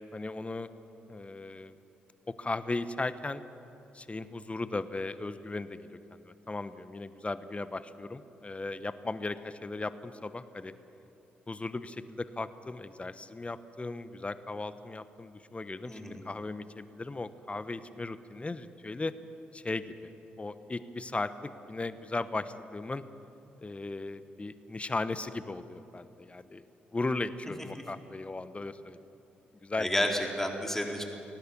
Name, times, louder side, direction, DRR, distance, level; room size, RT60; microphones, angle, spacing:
voice 1, 0.1-0.7 1.1-1.7 2.3-3.4 3.9-10.7 11.5-19.1 19.5-20.1 20.4-23.0 23.6-26.6 26.9-29.0 29.6-29.9, left 3 dB, 25° left, 13 dB, 1.1 m, -37 dB
voice 2, 15.9-16.2 29.8-31.0, left 1 dB, 10° left, 2 dB, 3.8 m, -30 dB
22.5 x 18.5 x 7.0 m, 2.9 s
hypercardioid pair, 40°, 5 cm